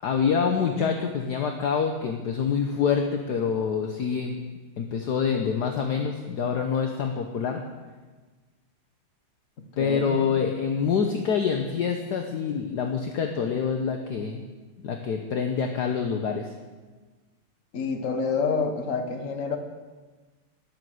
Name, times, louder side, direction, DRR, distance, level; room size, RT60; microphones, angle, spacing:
voice 1, 0.0-4.4 4.8-7.6 9.8-14.4 14.8-16.5, left 6 dB, 60° left, 4 dB, 1.4 m, -26 dB
voice 2, 9.8-10.2 17.7-19.6, left 5 dB, 40° left, 6 dB, 1.6 m, -28 dB
12.0 x 11.0 x 7.9 m, 1.3 s
omnidirectional pair, 2.3 m